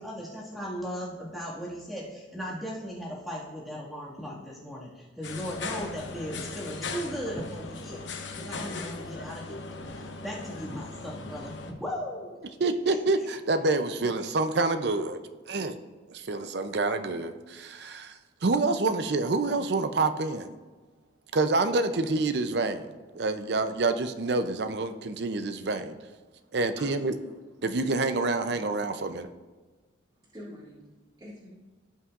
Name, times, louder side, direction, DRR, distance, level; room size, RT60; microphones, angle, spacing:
voice 1, 0.0-9.7 9.9-13.0, equal, ahead, -7 dB, 1.9 m, -37 dB
sound 1, 5.2-11.7, left 3 dB, 75° left, 0.9 m, -38 dB
voice 2, 12.6-15.2 15.5-15.8 16.1-20.5 21.3-22.9 23.1-26.0 26.5-27.1 27.6-29.3, right 3 dB, 60° right, 9 dB, 0.5 m, -27 dB
voice 3, 26.7-27.3 30.1-30.8 31.2-31.5, equal, 20° right, -10 dB, 2.2 m, -46 dB
16.5 x 5.5 x 2.5 m, 1.3 s
head